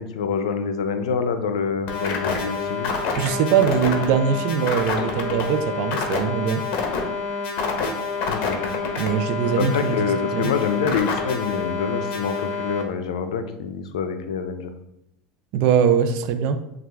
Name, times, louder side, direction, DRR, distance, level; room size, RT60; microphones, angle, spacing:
voice 1, 0.0-2.9 8.3-8.6 9.4-14.7, left 6 dB, 90° left, 8 dB, 0.5 m, -26 dB
sound 1, 1.9-12.8, left 4 dB, 55° left, 0.9 m, -27 dB
voice 2, 3.2-6.6 9.0-10.5 15.5-16.6, right 7 dB, 65° right, 9 dB, 0.5 m, -22 dB
6.3 x 2.4 x 3.4 m, 0.81 s
supercardioid pair, 105°, 3 cm